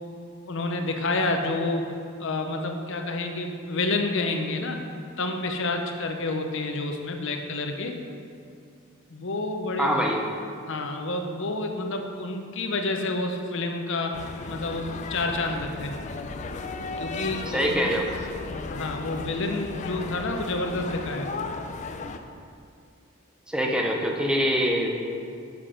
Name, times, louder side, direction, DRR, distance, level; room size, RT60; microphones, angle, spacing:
voice 1, 0.5-1.9 2.2-4.8 5.2-7.9 9.1-9.9 10.7-14.2 14.5-15.9 17.0-17.9 18.5-21.3, left 2 dB, 55° left, 4 dB, 0.7 m, -29 dB
voice 2, 9.8-10.2 17.5-18.1 23.5-25.1, equal, 5° right, 0 dB, 0.6 m, -24 dB
sound 1, 14.1-22.2, left 3 dB, 35° left, 0.3 m, -35 dB
7.2 x 5.9 x 5.0 m, 2.4 s
head